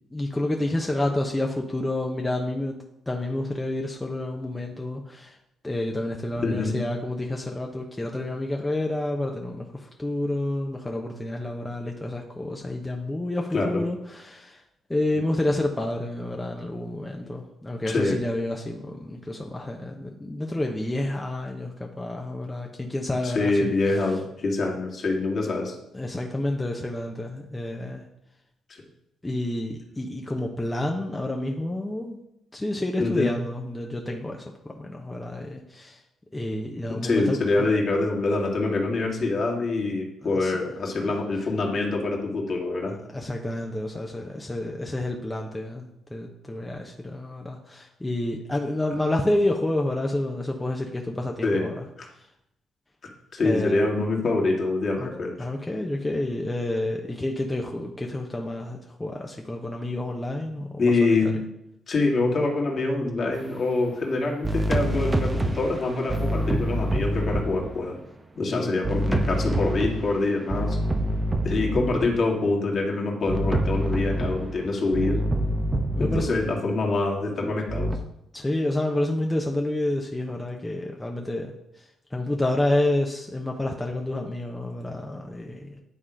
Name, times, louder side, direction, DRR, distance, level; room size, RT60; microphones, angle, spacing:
voice 1, 0.1-2.8 3.1-5.4 5.6-14.6 14.9-24.0 25.9-28.0 29.2-32.2 32.5-36.0 36.3-37.7 40.2-40.5 42.9-51.9 52.2-52.3 53.4-53.9 55.0-55.1 55.4-61.3 68.5-68.8 75.9-76.3 78.3-81.5 81.8-81.9 82.1-85.8, left 1 dB, 15° left, 1 dB, 1.0 m, -29 dB
voice 2, 6.4-6.8 13.5-13.8 17.9-18.2 23.2-25.7 28.7-28.8 33.0-33.3 36.9-42.9 51.4-51.7 52.0-52.1 53.3-55.3 60.8-61.3 61.9-68.0 68.4-70.8 71.4-75.2 76.0-77.9, left 3 dB, 55° left, -1 dB, 2.2 m, -25 dB
sound 1, 63.4-63.6 64.4-67.9 68.8-72.2 73.3-76.5 77.7-78.0, right 1 dB, 25° right, 0.9 m, -26 dB
10.0 x 3.7 x 5.0 m, 0.82 s
hypercardioid pair, 50°, 0 cm